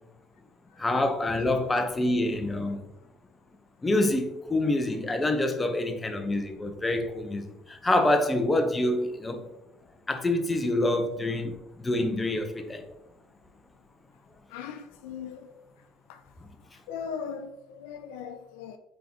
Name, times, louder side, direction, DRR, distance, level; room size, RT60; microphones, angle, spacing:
voice 1, 0.8-2.8 3.8-9.4 10.1-11.6 11.8-12.8, left 1 dB, 20° left, 1.0 m, -26 dB
voice 2, 14.5-15.5 16.1-16.2 16.9-18.8, left 7 dB, 85° left, 0.5 m, -38 dB
9.1 x 3.9 x 3.0 m
supercardioid pair, 85°, 0 cm